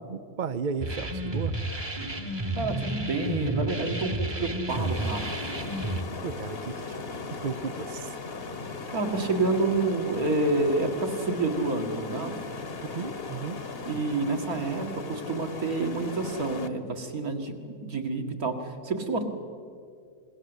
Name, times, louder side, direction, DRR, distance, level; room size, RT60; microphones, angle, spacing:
voice 1, 0.1-1.5 6.2-7.0 7.4-8.2 12.9-13.6, right 6 dB, 45° right, 11 dB, 0.7 m, -34 dB
sound 1, 0.8-6.0, right 1 dB, 20° right, 1.3 m, -31 dB
voice 2, 2.6-5.4 8.9-12.4 13.8-19.3, right 3 dB, 70° right, 3 dB, 2.7 m, -28 dB
sound 2, 4.7-16.7, left 4 dB, 40° left, 1.5 m, -38 dB
28.0 x 21.0 x 8.2 m, 2.3 s
omnidirectional pair, 1.6 m